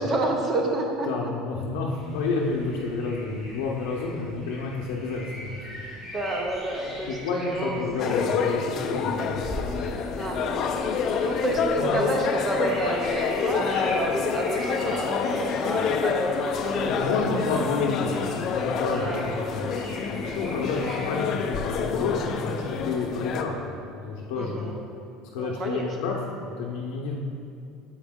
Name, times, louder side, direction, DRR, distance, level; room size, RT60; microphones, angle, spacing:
voice 1, 0.0-1.3 5.9-7.9 10.2-10.7 11.2-17.2 18.9-19.3 24.4-24.8 25.4-25.9, right 2 dB, 25° right, 1 dB, 0.5 m, -29 dB
voice 2, 1.1-5.8 6.9-9.5 11.8-12.0 16.8-24.7 25.3-26.2 26.4-27.1, left 3 dB, 85° left, -2 dB, 0.6 m, -30 dB
sound 1, 1.9-21.1, equal, 5° right, 1.6 m, -41 dB
sound 2, 8.0-23.4, left 6 dB, 40° left, 0.4 m, -28 dB
7.1 x 4.9 x 3.6 m, 2.6 s
cardioid pair, 170°, 0 cm